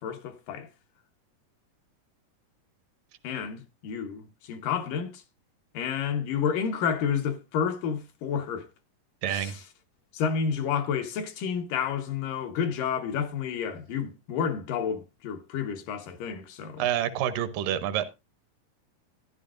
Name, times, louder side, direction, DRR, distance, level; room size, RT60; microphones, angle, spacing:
voice 1, 0.0-0.7 3.2-5.2 5.7-8.7 9.3-9.7 10.1-16.9, left 7 dB, 75° left, 2.7 m, -30 dB
voice 2, 9.2-9.5 16.8-18.1, right 11 dB, 80° right, 2.5 m, -27 dB
14.0 x 10.5 x 2.5 m
omnidirectional pair, 3.9 m